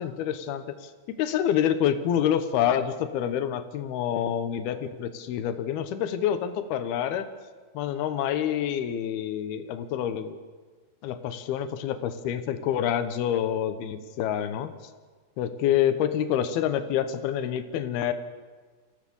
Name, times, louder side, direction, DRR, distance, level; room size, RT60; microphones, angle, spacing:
voice 1, 0.0-7.3 7.7-10.4 11.0-14.7 15.4-18.1, left 10 dB, 70° left, 10 dB, 2.8 m, -27 dB
25.0 x 15.5 x 7.1 m, 1.4 s
omnidirectional pair, 4.9 m